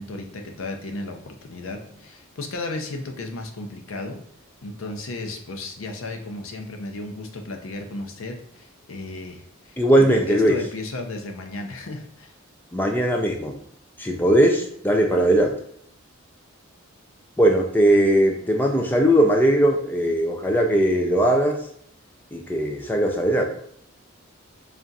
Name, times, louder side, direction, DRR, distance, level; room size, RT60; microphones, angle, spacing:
voice 1, 0.0-4.2 4.6-12.3 17.9-18.0, left 2 dB, 80° left, 4 dB, 0.6 m, -34 dB
voice 2, 9.8-10.6 12.7-13.5 14.0-15.5 17.4-21.6 22.3-23.4, right 1 dB, 10° left, 2 dB, 0.3 m, -19 dB
3.4 x 2.5 x 4.0 m, 0.67 s
head